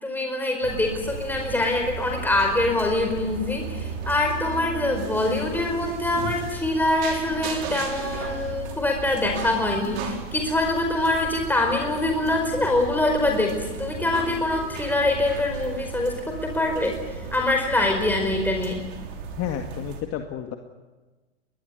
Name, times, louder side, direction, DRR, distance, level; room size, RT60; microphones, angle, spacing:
voice 1, 0.0-16.9 17.3-18.8, left 2 dB, 5° left, 2 dB, 4.8 m, -24 dB
sound 1, 0.6-20.0, right 5 dB, 55° right, 5.9 m, -35 dB
voice 2, 19.4-20.6, left 10 dB, 40° left, 4 dB, 2.1 m, -31 dB
23.0 x 20.5 x 9.5 m, 1.2 s
hypercardioid pair, 105°, 37 cm